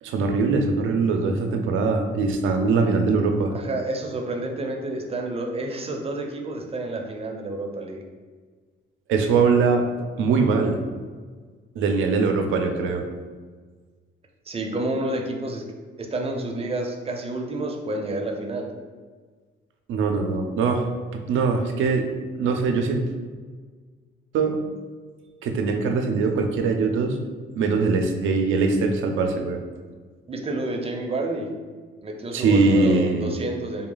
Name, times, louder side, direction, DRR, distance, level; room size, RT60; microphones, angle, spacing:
voice 1, 0.0-3.5 9.1-9.8 10.2-10.8 11.8-13.0 19.9-20.9 21.1-22.1 22.3-23.0 24.3-24.6 25.4-27.2 27.6-29.6 32.3-33.3, right 4 dB, 80° right, 4 dB, 0.6 m, -22 dB
voice 2, 3.5-8.0 14.5-15.6 16.0-18.7 30.3-31.5 32.0-33.9, right 2 dB, 30° right, 2 dB, 0.6 m, -29 dB
3.7 x 2.3 x 3.8 m, 1.5 s
cardioid pair, 90°, 20 cm